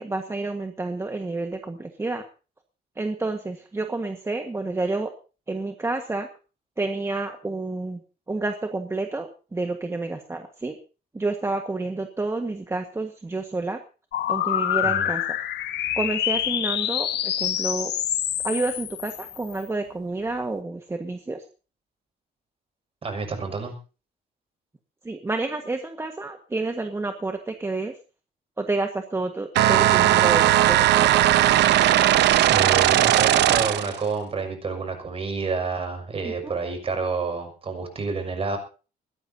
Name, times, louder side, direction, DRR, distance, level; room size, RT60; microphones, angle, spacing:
voice 1, 0.0-2.2 3.0-5.1 5.5-6.3 6.8-8.0 8.3-10.7 11.1-13.8 14.3-15.2 16.0-17.9 18.4-21.4 25.0-27.9 28.6-31.1 36.2-36.5, right 3 dB, 15° right, 5 dB, 1.6 m, -29 dB
sound 1, 14.1-19.6, left 11 dB, 75° left, 1.4 m, -26 dB
voice 2, 23.0-23.7 32.5-38.6, right 4 dB, 35° right, 5 dB, 6.2 m, -29 dB
sound 2, 29.6-34.0, right 13 dB, 80° right, 0.9 m, -18 dB
21.5 x 18.0 x 2.8 m, 0.35 s
cardioid pair, 140°, 17 cm